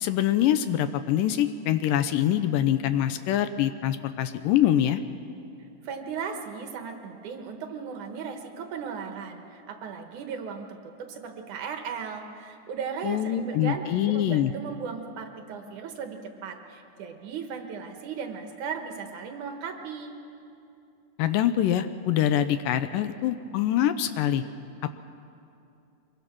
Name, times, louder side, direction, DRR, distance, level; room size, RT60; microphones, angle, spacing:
voice 1, 0.0-5.0 13.0-14.5 21.2-24.4, left 11 dB, 80° left, 11 dB, 2.2 m, -24 dB
voice 2, 5.8-20.2, right 6 dB, 65° right, 5 dB, 2.4 m, -36 dB
24.0 x 22.0 x 6.0 m, 2.7 s
omnidirectional pair, 4.1 m